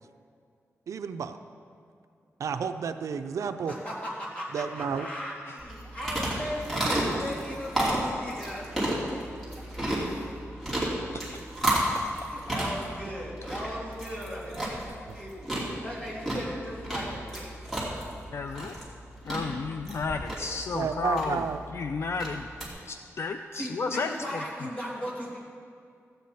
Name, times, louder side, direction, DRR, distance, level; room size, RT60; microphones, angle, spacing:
voice 1, 0.9-1.4 2.4-3.7 4.5-5.1 15.1-15.2 20.7-21.6, right 6 dB, 80° right, 9 dB, 0.5 m, -31 dB
voice 2, 3.7-10.8 11.1-11.2 12.2-17.5 23.5-25.4, equal, 25° left, -6 dB, 3.0 m, -38 dB
sound 1, 5.6-22.7, right 1 dB, 5° left, 2.8 m, -32 dB
voice 3, 18.3-18.8 19.2-21.4 21.7-22.5 22.9-24.4, left 4 dB, 55° left, 7 dB, 0.4 m, -32 dB
15.5 x 8.0 x 4.2 m, 2.3 s
wide cardioid pair, 115°, 5 cm